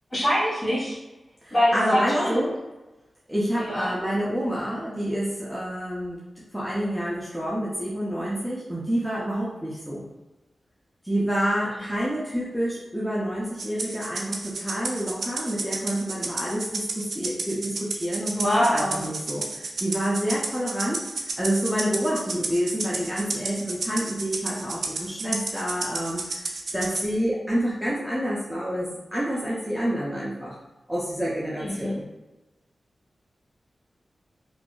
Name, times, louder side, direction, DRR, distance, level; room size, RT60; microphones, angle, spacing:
voice 1, 0.1-1.0 1.5-2.4 3.6-3.9 18.3-19.0 31.6-32.0, equal, 35° left, -8 dB, 1.4 m, -24 dB
voice 2, 1.4-2.5 3.3-6.2 6.5-10.1 11.0-30.6 30.9-32.0, equal, 5° right, -7 dB, 0.5 m, -28 dB
Rattle (instrument), 13.6-27.1, right 3 dB, 80° right, 0.3 m, -32 dB
2.6 x 2.3 x 2.2 m, 1.1 s
wide cardioid pair, 95°, 0 cm